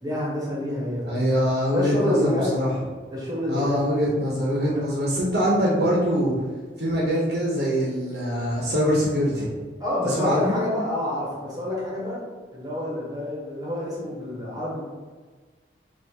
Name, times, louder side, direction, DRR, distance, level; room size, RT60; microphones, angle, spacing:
voice 1, 0.0-1.3 1.7-2.6 3.1-3.8 4.7-4.8 9.8-12.2 12.5-14.8, left 1 dB, 20° right, -6 dB, 1.2 m, -27 dB
voice 2, 1.0-2.7 3.5-6.4 6.8-9.5 10.0-10.6, equal, 60° right, -5 dB, 0.8 m, -23 dB
3.4 x 2.5 x 4.5 m, 1.4 s
head